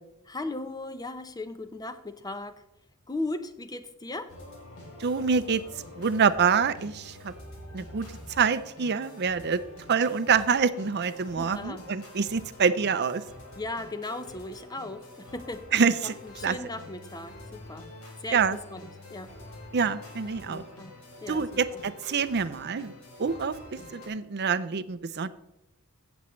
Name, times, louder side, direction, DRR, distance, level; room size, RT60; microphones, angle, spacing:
voice 1, 0.3-2.6 3.1-4.3 11.3-11.8 13.6-15.7 16.2-17.9 18.2-18.8 19.1-19.3 20.5-21.4, left 2 dB, 15° left, 10 dB, 0.7 m, -37 dB
sound 1, 4.3-24.1, left 1 dB, 65° left, 3.2 m, -47 dB
voice 2, 5.0-5.6 6.0-7.3 7.7-9.6 9.9-13.2 15.7-16.2 16.4-16.6 18.3-18.6 19.7-20.6 21.3-22.9 23.2-25.3, right 6 dB, 50° right, 14 dB, 0.5 m, -26 dB
16.5 x 7.1 x 3.1 m, 0.92 s
head